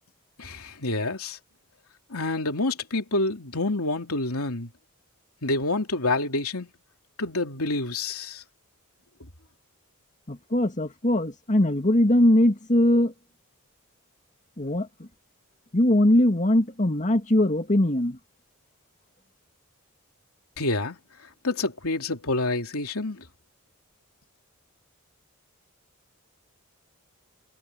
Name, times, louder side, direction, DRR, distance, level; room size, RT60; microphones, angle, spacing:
voice 1, 0.4-1.4 2.1-4.7 5.4-6.7 7.2-8.4 20.6-21.0 21.4-23.2, left 2 dB, 80° left, 3.2 m, -28 dB
voice 2, 10.3-13.1 14.6-15.1 15.7-18.2, left 1 dB, 35° left, 2.1 m, -21 dB
head